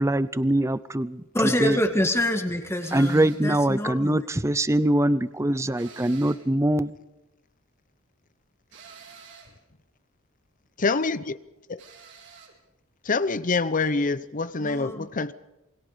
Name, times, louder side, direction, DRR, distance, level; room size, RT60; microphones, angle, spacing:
voice 1, 0.0-1.8 2.9-6.9, right 1 dB, 15° right, 0.7 m, -23 dB
voice 2, 1.3-4.2 14.6-15.1, left 1 dB, 10° left, 1.9 m, -26 dB
sound 1, 2.8-3.5 5.8-6.5 8.7-9.6 11.8-12.6, right 6 dB, 60° right, 4.5 m, -48 dB
voice 3, 10.8-11.4 11.7-11.8 13.0-15.3, left 3 dB, 40° left, 0.7 m, -26 dB
28.0 x 22.0 x 5.1 m
head